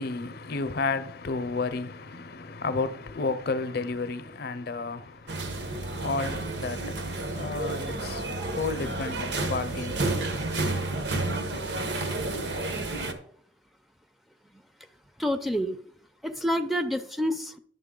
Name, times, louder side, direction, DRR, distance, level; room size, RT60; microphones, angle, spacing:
voice 1, 0.0-10.2, left 3 dB, 60° left, 0.6 m, -32 dB
sound 1, 5.3-13.1, right 2 dB, 70° right, 1.1 m, -31 dB
voice 2, 15.2-15.8 16.2-17.6, equal, ahead, 0.4 m, -28 dB
11.0 x 6.5 x 3.8 m
head